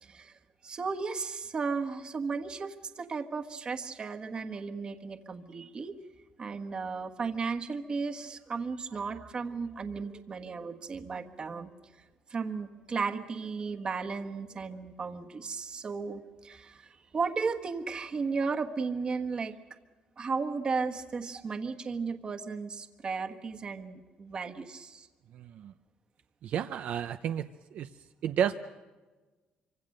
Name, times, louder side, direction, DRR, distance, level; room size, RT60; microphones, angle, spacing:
voice 1, 0.0-6.0 6.4-19.6 20.2-25.1, right 4 dB, 30° right, 6 dB, 1.4 m, -35 dB
voice 2, 25.3-25.7 26.4-27.4 27.7-27.9 28.2-28.6, right 9 dB, 65° right, 8 dB, 0.7 m, -31 dB
26.0 x 25.0 x 6.6 m, 1.3 s
cardioid pair, 145°, 3 cm